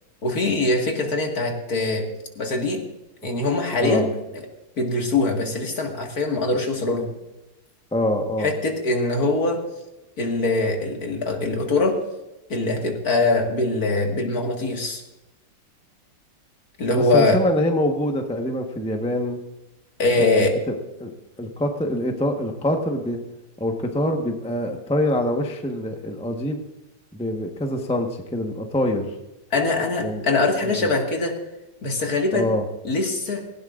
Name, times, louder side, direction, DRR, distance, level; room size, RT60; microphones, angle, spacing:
voice 1, 0.2-2.0 2.4-2.8 3.2-4.1 4.8-7.1 8.4-9.6 10.2-12.0 12.5-15.0 16.8-17.4 20.0-20.5 29.5-31.3 31.8-32.5 32.8-33.4, left 2 dB, 50° left, 1 dB, 2.3 m, -22 dB
voice 2, 7.9-8.5 16.9-19.4 20.2-21.1 21.4-23.2 23.6-26.6 27.1-29.1 30.0-30.2 30.6-30.9 32.3-32.6, left 1 dB, 5° left, 3 dB, 0.9 m, -25 dB
18.0 x 17.0 x 2.5 m, 0.97 s
omnidirectional pair, 2.0 m